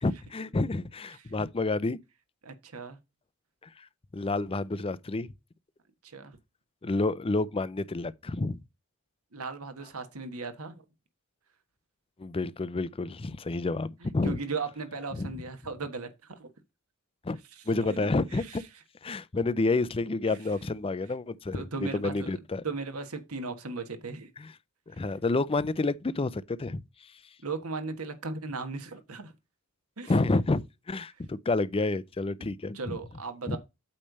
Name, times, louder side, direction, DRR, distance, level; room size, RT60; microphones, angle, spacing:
voice 1, 0.0-2.0 3.8-3.9 4.1-5.3 6.8-8.6 12.2-14.4 15.1-15.3 17.2-17.4 17.7-18.6 19.0-22.6 24.4-24.5 24.9-26.8 30.1-30.6 30.9-33.0 33.5-33.6, left 3 dB, 25° left, 0.5 m, -29 dB
voice 2, 2.4-3.0 6.0-6.4 9.3-10.7 14.0-16.5 17.5-18.0 18.3-18.6 20.2-20.4 21.5-22.3 22.6-24.3 27.4-29.3 30.0-30.1 32.4-32.5 32.7-33.6, right 4 dB, 75° right, 1.4 m, -37 dB
8.7 x 3.3 x 6.5 m
head